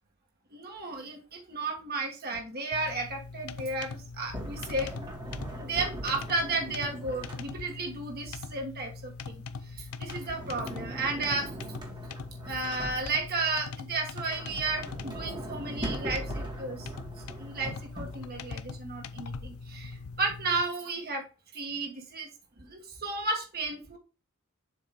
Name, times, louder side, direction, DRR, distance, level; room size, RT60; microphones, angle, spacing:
voice 1, 0.5-4.9 5.6-9.4 9.8-11.5 12.5-16.9 17.4-21.2 21.5-22.3 22.6-24.0, right 3 dB, 45° right, 1 dB, 1.5 m, -33 dB
sound 1, 2.7-20.6, left 4 dB, 85° left, 0.5 m, -42 dB
Sliding door, 4.3-7.9 9.9-13.5 14.0-18.4, right 1 dB, 20° right, 1.5 m, -40 dB
7.4 x 2.8 x 5.9 m, 0.33 s
head